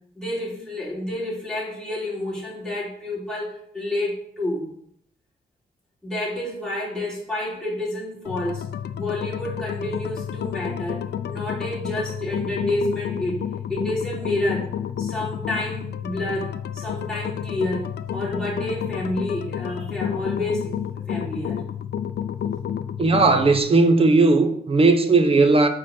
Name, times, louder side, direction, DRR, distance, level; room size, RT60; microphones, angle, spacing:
voice 1, 0.2-4.7 6.0-8.6 8.9-11.0 11.3-13.4 13.7-14.7 15.0-21.6, left 1 dB, 5° left, 3.1 m, -29 dB
sound 1, 8.3-23.6, left 9 dB, 75° left, 0.5 m, -30 dB
voice 2, 23.0-25.7, right 3 dB, 35° right, 0.9 m, -17 dB
9.7 x 4.1 x 4.4 m
wide cardioid pair, 145°, 17 cm